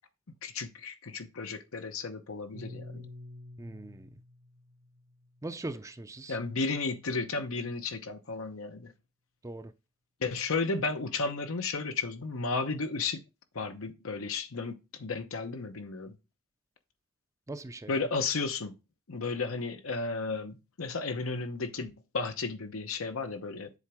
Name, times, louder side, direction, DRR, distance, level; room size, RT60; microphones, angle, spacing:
voice 1, 0.4-3.1 6.3-8.9 10.2-13.2 13.5-16.2 17.9-18.7 19.1-23.7, left 4 dB, 90° left, 0.9 m, -33 dB
Piano, 2.5-7.0, left 1 dB, 85° right, 1.3 m, -49 dB
voice 2, 3.6-4.1 5.4-6.4 9.4-9.7 17.5-18.1, right 2 dB, 15° right, 0.4 m, -40 dB
7.3 x 3.8 x 3.5 m
head